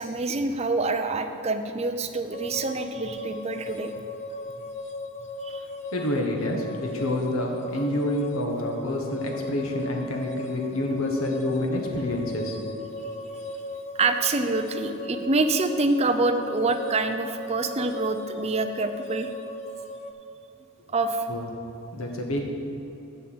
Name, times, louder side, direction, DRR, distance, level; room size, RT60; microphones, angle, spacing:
voice 1, 0.0-3.9 5.4-5.7 13.9-19.3 20.9-21.3, right 3 dB, 30° right, 7 dB, 0.5 m, -26 dB
sound 1, 2.3-20.1, left 1 dB, 30° left, 0.4 m, -37 dB
voice 2, 5.9-12.6 21.3-21.4 21.9-22.4, left 1 dB, 70° left, 2 dB, 1.5 m, -28 dB
7.1 x 7.0 x 7.9 m, 2.9 s
head